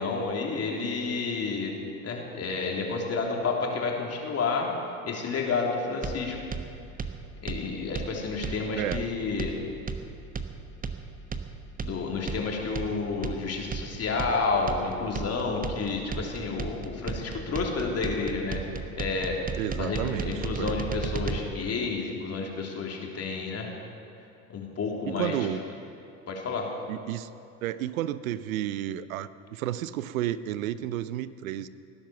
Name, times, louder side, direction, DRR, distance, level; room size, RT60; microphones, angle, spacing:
voice 1, 0.0-1.7 2.0-4.7 5.1-6.4 7.4-9.5 11.8-18.6 19.0-19.4 19.8-23.7 24.5-25.3 26.3-26.7, left 4 dB, 35° left, 0 dB, 3.4 m, -30 dB
sound 1, 6.0-21.4, right 4 dB, 20° right, 1.1 m, -35 dB
voice 2, 19.6-20.8 25.0-25.6 26.9-27.3 27.6-31.7, right 12 dB, 80° right, 16 dB, 0.7 m, -32 dB
18.5 x 11.0 x 7.1 m, 2.7 s
hypercardioid pair, 75°, 40 cm